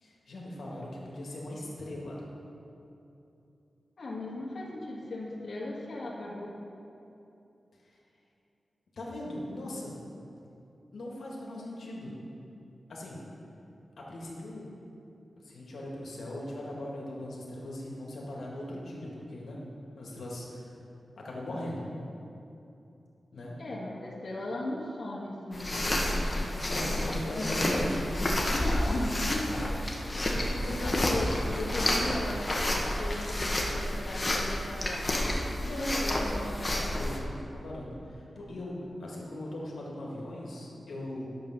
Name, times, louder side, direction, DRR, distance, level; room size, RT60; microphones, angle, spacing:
voice 1, 0.0-2.2 8.9-10.0 10.9-12.1 12.9-13.2 14.0-14.7 15.4-19.6 20.0-20.8 21.2-21.9 23.3-23.6 26.6-28.3 30.4-30.9 35.6-41.3, left 1 dB, 75° left, -4 dB, 1.9 m, -39 dB
voice 2, 4.0-6.5 23.6-26.4 28.5-29.7 30.6-35.1 38.6-38.9, left 1 dB, 50° left, -6 dB, 1.7 m, -37 dB
sound 1, 25.5-37.2, left 1 dB, 25° left, 1.1 m, -30 dB
10.5 x 7.0 x 5.8 m, 2.8 s
wide cardioid pair, 130°, 0 cm